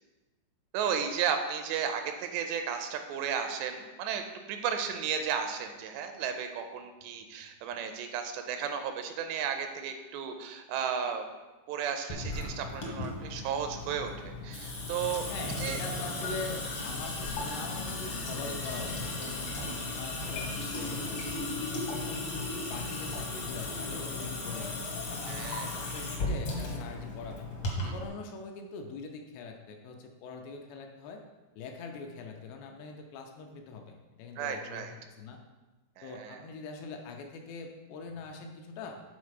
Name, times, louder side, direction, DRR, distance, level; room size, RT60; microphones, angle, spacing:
voice 1, 0.7-11.3 11.7-15.3 15.6-15.8 25.3-25.7 27.8-27.9 34.4-34.9 36.0-36.4, right 7 dB, 85° right, 6 dB, 2.7 m, -34 dB
Water tap faucet / Sink (filling or washing) / Drip, 12.1-28.1, left 2 dB, 70° left, 1.5 m, -36 dB
voice 2, 15.3-19.5 19.9-21.1 21.6-27.5 27.9-31.2 31.6-35.4 36.0-39.0, left 4 dB, 85° left, 3 dB, 2.9 m, -43 dB
8.5 x 4.0 x 4.9 m, 1.2 s
omnidirectional pair, 5.0 m